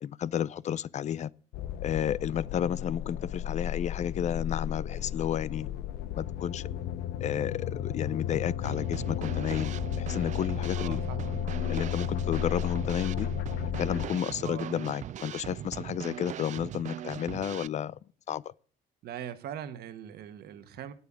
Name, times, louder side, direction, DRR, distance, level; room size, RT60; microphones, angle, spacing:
voice 1, 0.0-1.3 1.8-5.7 6.2-6.7 7.2-11.0 11.7-13.3 13.8-18.0 18.3-18.5, left 9 dB, 45° left, 0.5 m, -32 dB
sound 1, 1.5-14.1, left 10 dB, 75° left, 0.8 m, -33 dB
Drum kit / Snare drum, 8.6-17.7, right 11 dB, 45° right, 0.4 m, -40 dB
voice 2, 10.7-11.4 14.4-14.8 19.0-20.9, right 10 dB, 70° right, 1.4 m, -41 dB
9.5 x 8.3 x 7.4 m
cardioid pair, 110°, 17 cm